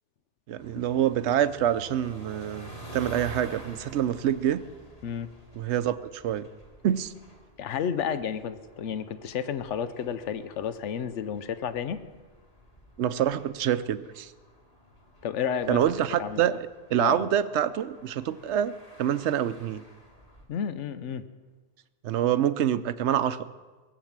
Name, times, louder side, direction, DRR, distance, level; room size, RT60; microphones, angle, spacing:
voice 1, 0.5-4.6 5.5-6.5 6.8-7.1 13.0-14.3 15.7-19.8 22.0-23.4, right 10 dB, 75° right, 14 dB, 0.9 m, -26 dB
sound 1, 0.6-20.4, right 1 dB, 30° left, 2.1 m, -50 dB
voice 2, 7.6-12.0 15.2-15.8 16.2-16.4 17.0-17.3 20.5-21.2, left 8 dB, 85° left, 12 dB, 1.1 m, -31 dB
18.5 x 7.7 x 7.4 m, 1.3 s
omnidirectional pair, 1.2 m